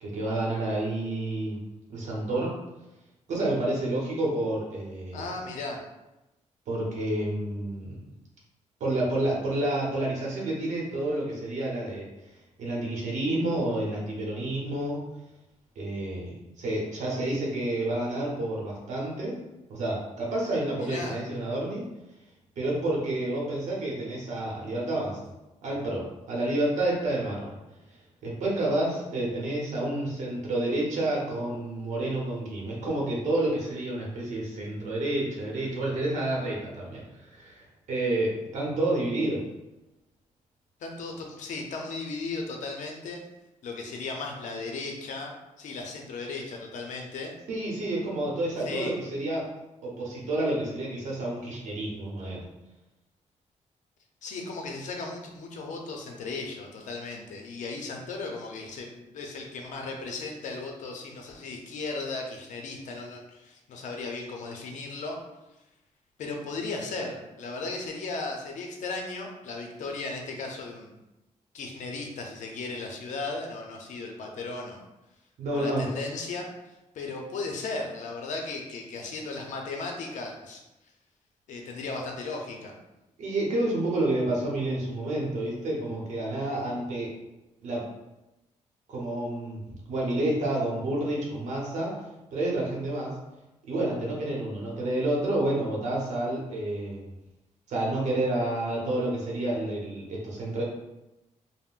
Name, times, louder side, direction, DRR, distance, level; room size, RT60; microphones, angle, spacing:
voice 1, 0.0-1.6 1.9-2.5 3.3-5.3 6.7-8.0 8.8-12.0 12.6-15.0 15.8-19.4 19.7-21.8 22.6-25.3 25.6-27.6 28.2-37.0 37.3-39.4 47.5-49.5 49.8-52.4 75.4-75.9 83.2-87.1 87.6-87.8 88.9-91.9 92.3-93.1 93.7-97.0 97.7-100.6, right 1 dB, 70° right, -3 dB, 0.8 m, -29 dB
voice 2, 5.1-5.8 20.8-21.2 40.8-43.2 43.6-45.3 45.6-47.3 48.6-48.9 54.2-65.2 66.2-70.9 71.5-74.8 75.5-76.5 76.9-80.6 81.5-82.8, left 3 dB, 75° left, 1 dB, 0.6 m, -36 dB
3.6 x 2.1 x 2.4 m, 0.97 s
wide cardioid pair, 150°, 13 cm